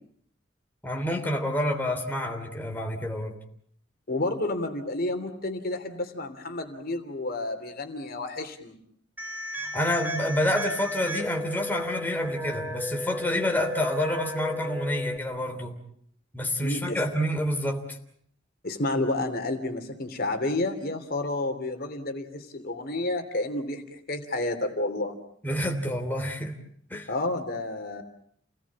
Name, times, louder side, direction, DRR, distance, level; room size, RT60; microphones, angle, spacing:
voice 1, 0.8-3.4 9.6-15.7 16.3-18.0 25.4-26.6 26.9-27.1, left 1 dB, 10° left, 1 dB, 3.3 m, -28 dB
voice 2, 4.1-8.8 16.6-17.0 18.6-25.2 27.1-28.0, left 2 dB, 50° left, 6 dB, 3.1 m, -30 dB
sound 1, 9.2-15.2, left 1 dB, 10° right, 3.0 m, -34 dB
30.0 x 19.5 x 8.6 m, 0.65 s
head